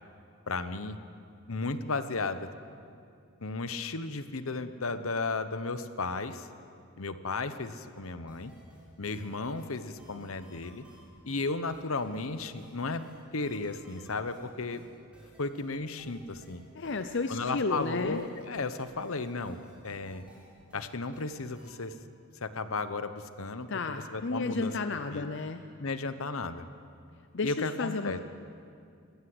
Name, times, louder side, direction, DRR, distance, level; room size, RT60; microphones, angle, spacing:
voice 1, 0.5-1.0 1.5-2.5 3.4-6.5 7.0-8.5 9.0-10.8 11.2-13.0 13.3-14.8 15.4-16.6 17.3-19.6 19.8-20.2 20.7-21.9 22.4-25.3 25.8-26.7 27.4-28.2, left 3 dB, 75° left, 11 dB, 1.0 m, -34 dB
sound 1, 8.3-21.9, right 1 dB, 5° right, 5.6 m, -56 dB
voice 2, 16.7-18.2 23.7-25.6 27.3-28.2, left 3 dB, 55° left, 8 dB, 0.7 m, -32 dB
21.0 x 16.0 x 7.9 m, 2.4 s
head